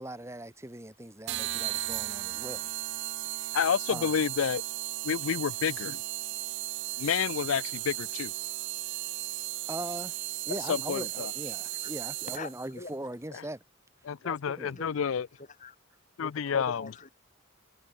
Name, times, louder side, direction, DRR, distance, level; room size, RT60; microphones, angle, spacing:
voice 1, 0.0-2.7 3.3-3.5 3.9-4.1 9.7-10.1 10.4-13.6 14.6-14.7, right 1 dB, 15° right, 1.6 m, -40 dB
sound 1, 1.3-12.7, right 17 dB, 55° right, 0.4 m, -35 dB
voice 2, 3.5-4.6 5.0-6.0 7.0-8.3 10.6-11.3 13.3-13.5 14.0-15.3 16.2-16.9, left 7 dB, 70° left, 0.4 m, -29 dB
voice 3, 12.2-12.9 14.2-15.1 15.4-15.8 16.2-17.1, left 3 dB, 35° left, 2.5 m, -43 dB
head